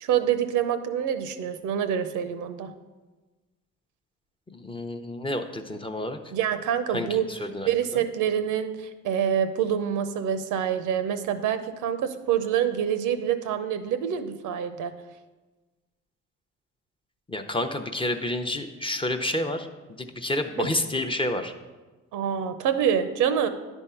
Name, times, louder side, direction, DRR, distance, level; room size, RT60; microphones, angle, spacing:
voice 1, 0.0-2.7 6.3-7.3 7.7-14.9 20.6-20.7 22.1-23.5, right 9 dB, 85° right, 10 dB, 0.6 m, -26 dB
voice 2, 4.5-6.2 6.9-7.7 17.3-21.5, left 1 dB, 15° left, 5 dB, 0.6 m, -29 dB
10.5 x 3.6 x 5.6 m, 1.2 s
cardioid pair, 90°, 30 cm